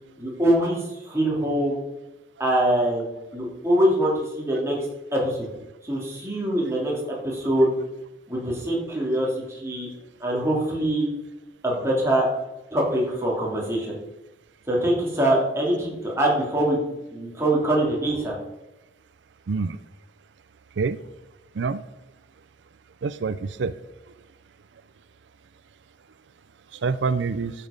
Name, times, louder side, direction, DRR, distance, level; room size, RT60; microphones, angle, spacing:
voice 1, 0.2-1.8 2.4-3.1 3.3-4.8 5.1-5.5 5.8-7.7 8.3-9.9 10.2-11.1 11.6-12.3 12.7-13.9 14.7-16.8 17.1-18.3, right 1 dB, 15° right, -4 dB, 2.9 m, -23 dB
voice 2, 19.5-19.8 20.8-21.0 21.6-21.8 23.0-23.7 26.8-27.5, right 4 dB, 85° right, 15 dB, 0.5 m, -26 dB
11.0 x 7.4 x 5.2 m, 0.99 s
head